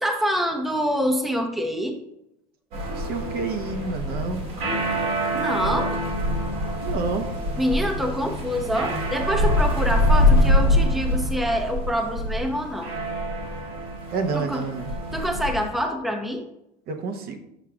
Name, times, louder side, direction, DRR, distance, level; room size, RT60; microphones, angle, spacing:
voice 1, 0.0-2.0 5.3-6.0 7.6-12.9 14.3-14.6 15.1-16.4, equal, ahead, 3 dB, 0.7 m, -26 dB
sound 1, 2.7-15.6, left 1 dB, 75° right, 2.0 m, -24 dB
voice 2, 2.9-4.4 6.8-7.3 14.1-14.9 16.9-17.4, right 4 dB, 55° right, 5 dB, 0.9 m, -29 dB
7.0 x 5.6 x 2.4 m, 0.83 s
hypercardioid pair, 80°, 19 cm